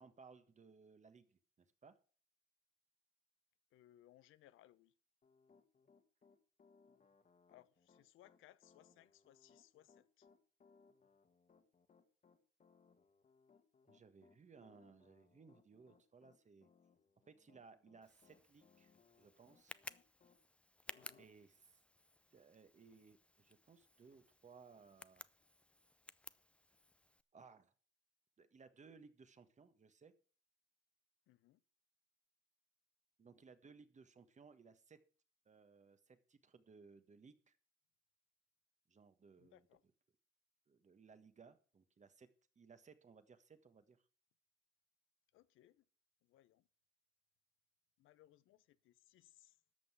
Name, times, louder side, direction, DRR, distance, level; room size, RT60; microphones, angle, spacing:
voice 1, 0.0-1.4 1.8-2.0 13.9-16.7 17.2-19.8 21.2-21.6 22.3-25.2 27.3-27.7 28.4-30.1 33.2-35.0 35.4-37.6 38.9-39.6 40.7-42.3 42.5-44.0, right 5 dB, 35° right, 1.5 m, -62 dB
voice 2, 3.7-4.9 7.5-10.3 20.9-21.3 31.3-31.6 39.4-39.8 45.3-45.9 46.2-46.7 48.0-49.6, left 14 dB, 90° left, 0.7 m, -67 dB
Piano, 5.2-20.4 20.9-21.3, left 5 dB, 40° left, 1.6 m, -70 dB
Tick, 18.0-27.2, left 1 dB, 5° left, 0.5 m, -58 dB
13.0 x 5.6 x 8.1 m
cardioid pair, 90°, 20 cm